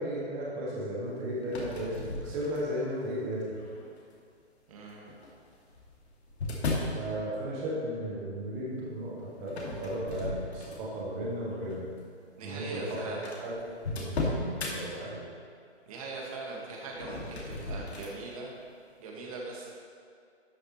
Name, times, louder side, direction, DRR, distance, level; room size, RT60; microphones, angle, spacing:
voice 1, 0.0-3.6 6.8-11.9 12.4-13.5 14.0-15.2, equal, 5° right, -5 dB, 0.5 m, -35 dB
sound 1, 1.4-2.9 3.5-4.0 5.1-7.0 9.5-11.0 11.5-11.7 12.5-12.6 12.8-12.9 13.2-14.7 16.9-18.2, left 2 dB, 65° left, 2.4 m, -35 dB
voice 2, 4.7-5.1 12.4-13.4 15.9-18.5 19.0-19.7, right 3 dB, 30° right, -2 dB, 1.8 m, -40 dB
12.5 x 8.1 x 3.2 m, 2.3 s
hypercardioid pair, 150°, 35 cm